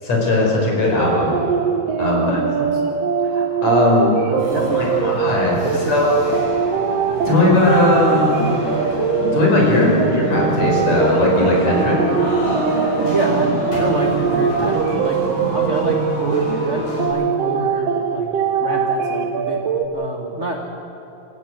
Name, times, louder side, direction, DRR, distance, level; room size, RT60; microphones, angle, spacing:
voice 1, 0.0-1.4 2.0-2.4 3.2-4.2 4.7-5.6 5.9-6.1 7.3-8.3 9.3-12.0, left 2 dB, 55° left, -2 dB, 6.0 m, -18 dB
sound 1, 0.8-19.9, right 7 dB, 65° right, 1.8 m, -22 dB
voice 2, 2.2-3.0 4.3-5.3 5.7-5.9 13.1-15.2 15.5-18.3 18.6-19.6 19.9-20.6, right 2 dB, 35° right, 1 dB, 1.1 m, -27 dB
sound 2, 4.4-17.1, equal, 80° left, 8.3 m, -25 dB
28.0 x 15.0 x 8.0 m, 3.0 s
omnidirectional pair, 3.8 m